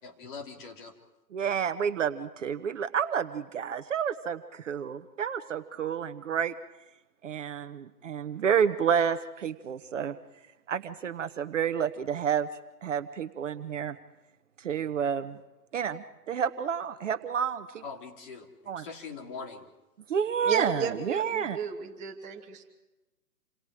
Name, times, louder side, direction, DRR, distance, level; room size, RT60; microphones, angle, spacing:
voice 1, 0.0-0.9 17.8-19.7, left 5 dB, 35° left, 3 dB, 3.0 m, -42 dB
voice 2, 1.3-6.5 7.2-10.2 10.7-12.5 12.8-14.0 14.6-15.4 15.7-17.8 18.7-18.9 20.1-21.6, right 7 dB, 50° right, 9 dB, 1.2 m, -30 dB
voice 3, 20.4-22.6, right 6 dB, 15° right, 0 dB, 2.5 m, -33 dB
28.5 x 27.0 x 5.0 m, 1.0 s
hypercardioid pair, 150°, 47 cm